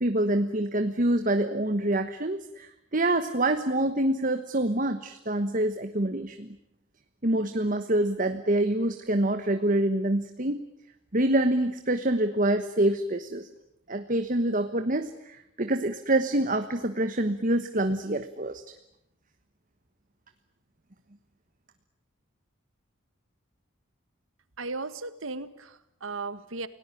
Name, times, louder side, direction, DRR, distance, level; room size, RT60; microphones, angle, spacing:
voice 1, 0.0-6.5 7.2-10.6 11.1-13.5 13.9-18.6, right 1 dB, 40° right, 8 dB, 1.3 m, -26 dB
voice 2, 24.6-26.7, right 3 dB, 85° right, 13 dB, 1.7 m, -36 dB
29.5 x 18.5 x 9.8 m, 0.80 s
head